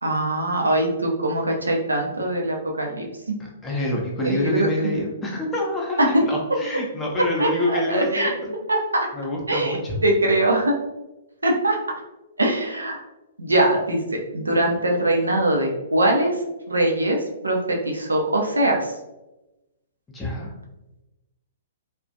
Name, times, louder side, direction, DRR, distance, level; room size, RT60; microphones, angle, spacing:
voice 1, 0.0-3.4 4.2-4.9 7.4-8.3 8.7-9.1 9.5-10.7 11.4-11.8 12.4-13.0 13.4-16.3 16.7-17.2 17.4-18.9, right 1 dB, 85° right, 1 dB, 0.5 m, -22 dB
voice 2, 3.6-8.3 9.1-10.0 20.1-20.5, left 1 dB, 15° left, -3 dB, 0.5 m, -26 dB
2.3 x 2.1 x 2.6 m, 0.99 s
figure-of-eight pair, 115°, 0 cm